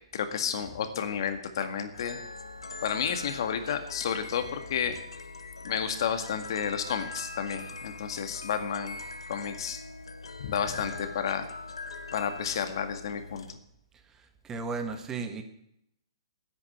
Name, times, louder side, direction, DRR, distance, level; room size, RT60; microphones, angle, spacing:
voice 1, 0.1-2.2 2.8-5.0 5.6-9.0 9.3-9.8 10.4-11.5 12.1-13.6, left 7 dB, 60° left, 7 dB, 1.9 m, -31 dB
sound 1, 1.9-13.5, left 3 dB, 85° left, 1.5 m, -42 dB
voice 2, 14.4-15.4, right 4 dB, 15° right, 7 dB, 1.6 m, -34 dB
10.0 x 9.8 x 9.2 m, 0.78 s
hypercardioid pair, 135°, 3 cm